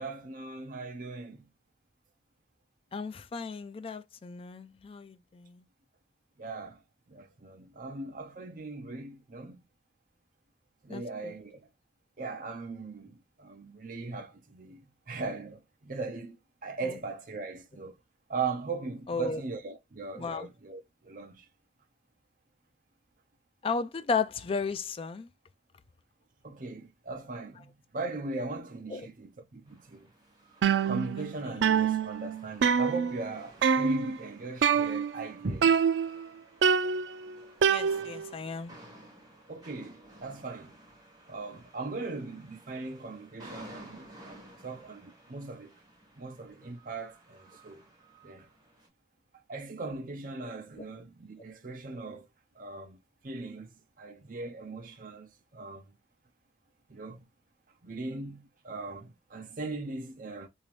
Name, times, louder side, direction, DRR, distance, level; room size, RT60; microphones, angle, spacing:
voice 1, 0.0-1.5 6.4-6.8 7.1-9.6 10.8-11.7 12.2-16.4 16.6-17.9 18.3-21.4 26.4-30.1 30.8-35.8 39.5-40.7 41.3-45.7 46.2-47.8 48.2-48.5 49.5-52.3 52.6-53.0 53.2-53.7 54.0-55.8 56.9-57.2 57.8-60.5, right 3 dB, 50° right, 0.6 m, -39 dB
voice 2, 2.9-5.6 10.9-11.4 16.8-17.0 19.1-19.4 20.2-20.5 23.6-25.3 28.9-29.1 31.2-31.6 37.7-38.8 50.8-50.9, left 5 dB, 30° left, 0.3 m, -35 dB
sound 1, 29.7-48.9, right 1 dB, 25° right, 1.7 m, -54 dB
sound 2, 30.6-31.3 31.6-33.3 33.6-34.2 34.6-35.3 35.6-36.2 36.6-38.3, right 6 dB, 90° right, 0.4 m, -26 dB
3.4 x 2.7 x 3.1 m
head